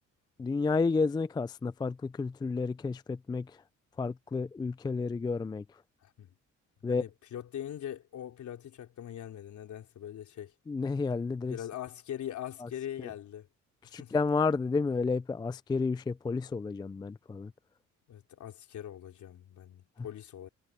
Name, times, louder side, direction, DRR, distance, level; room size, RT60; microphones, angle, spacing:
voice 1, 0.4-3.6 4.0-5.6 6.8-7.0 10.7-11.6 12.6-12.7 13.9-17.5, left 4 dB, 15° left, 0.4 m, -31 dB
voice 2, 6.0-6.3 6.8-10.5 11.4-13.5 13.8-14.2 18.1-20.5, left 11 dB, 65° left, 3.8 m, -42 dB
cardioid pair, 105°, 31 cm